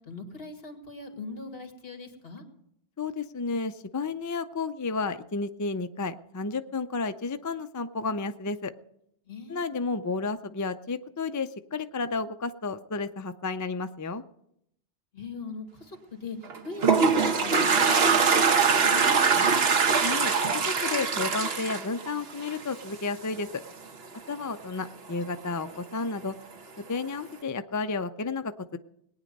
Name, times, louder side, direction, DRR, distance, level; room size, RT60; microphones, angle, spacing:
voice 1, 0.1-2.4 9.3-9.7 15.1-16.4 16.6-19.5, left 4 dB, 60° left, 5 dB, 2.3 m, -41 dB
voice 2, 3.0-8.7 9.5-14.2 20.0-23.5 24.3-26.3 26.9-28.8, left 4 dB, 30° left, 9 dB, 0.3 m, -32 dB
Toilet flush, 16.5-22.8, right 5 dB, 65° right, 1.3 m, -23 dB
19.5 x 9.5 x 5.3 m, 0.75 s
omnidirectional pair, 1.1 m